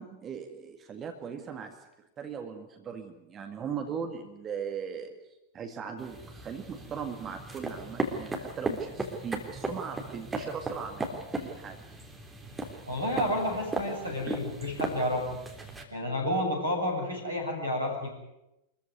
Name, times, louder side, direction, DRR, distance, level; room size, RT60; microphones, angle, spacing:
voice 1, 0.0-5.2 5.5-11.9 14.3-14.4, right 6 dB, 25° right, 5 dB, 1.9 m, -39 dB
sound 1, 6.0-15.8, right 2 dB, 10° right, 3.5 m, -37 dB
voice 2, 12.9-15.4 15.9-18.1, left 1 dB, 80° right, 1 dB, 7.4 m, -30 dB
25.0 x 15.0 x 9.4 m, 0.92 s
figure-of-eight pair, 90°, 0 cm